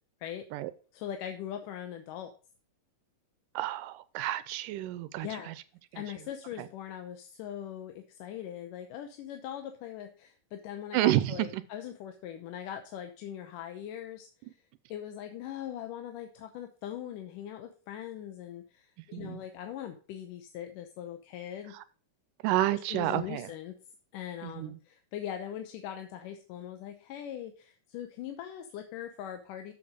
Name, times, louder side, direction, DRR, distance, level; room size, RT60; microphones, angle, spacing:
voice 1, 0.9-2.3 5.2-5.6 6.0-14.6 14.9-21.7 22.7-23.8 24.1-29.7, left 10 dB, 80° left, 6 dB, 2.4 m, -41 dB
voice 2, 3.6-5.5 5.9-6.0 10.9-11.6 19.1-19.4 22.4-23.5 24.4-24.8, right 15 dB, 90° right, 14 dB, 2.2 m, -30 dB
7.7 x 7.4 x 5.0 m, 0.37 s
omnidirectional pair, 3.8 m